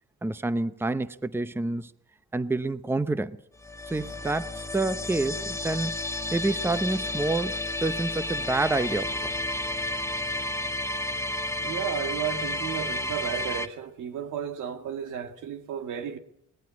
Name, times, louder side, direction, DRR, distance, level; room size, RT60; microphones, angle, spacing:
voice 1, 0.2-1.9 2.3-3.4 3.9-6.0 6.3-9.3, right 2 dB, 10° right, 0.7 m, -28 dB
sound 1, 3.6-13.7, left 1 dB, 10° left, 1.2 m, -31 dB
voice 2, 11.6-16.2, right 8 dB, 85° right, 1.9 m, -33 dB
20.5 x 15.5 x 8.5 m
cardioid pair, 90°, 30 cm